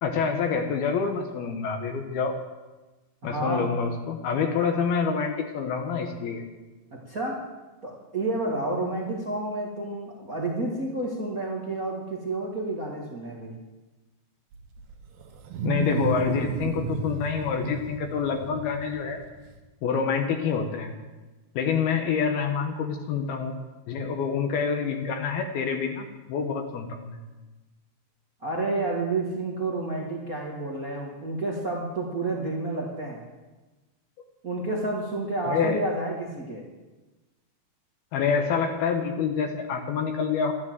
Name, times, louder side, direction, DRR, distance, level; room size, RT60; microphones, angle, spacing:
voice 1, 0.0-2.3 3.2-6.4 15.6-19.2 19.8-20.9 21.6-23.6 23.9-27.2 35.5-35.8 38.1-40.5, left 6 dB, 70° left, 4 dB, 2.9 m, -27 dB
voice 2, 3.2-3.7 7.1-7.4 7.8-13.5 28.4-33.2 34.4-36.6, right 2 dB, 55° right, -2 dB, 0.9 m, -30 dB
Wild animals, 14.5-19.6, right 4 dB, 70° right, 3.2 m, -32 dB
12.5 x 12.5 x 7.5 m, 1.2 s
omnidirectional pair, 4.9 m